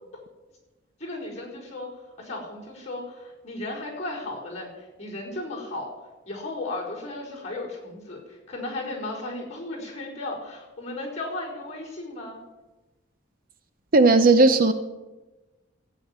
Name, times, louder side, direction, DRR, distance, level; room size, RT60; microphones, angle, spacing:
voice 1, 1.0-1.9 2.2-5.9 6.3-12.4, left 2 dB, 35° left, -4 dB, 4.8 m, -35 dB
voice 2, 13.9-14.7, right 3 dB, 45° right, 10 dB, 0.7 m, -16 dB
14.5 x 9.3 x 7.4 m, 1.1 s
head